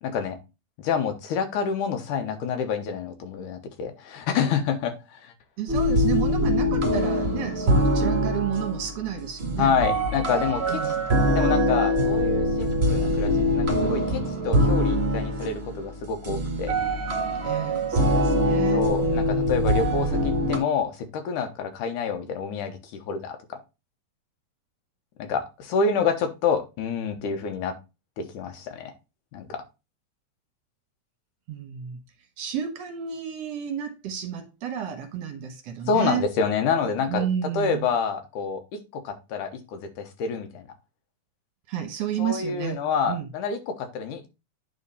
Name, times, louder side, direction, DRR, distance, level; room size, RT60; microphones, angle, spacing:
voice 1, 0.0-0.4 0.8-5.3 9.6-10.9 11.3-16.8 18.1-18.2 18.7-23.4 25.2-27.8 28.2-28.9 29.3-29.7 35.9-37.3 37.5-40.7 42.2-44.3, left 6 dB, 80° left, 2.7 m, -28 dB
voice 2, 5.6-9.7 10.7-11.0 17.4-19.6 31.5-32.0 32.4-36.2 37.1-37.9 41.7-43.3, right 9 dB, 65° right, 1.9 m, -31 dB
sound 1, 5.7-20.6, equal, 30° right, 1.1 m, -23 dB
9.5 x 4.2 x 4.1 m
omnidirectional pair, 3.6 m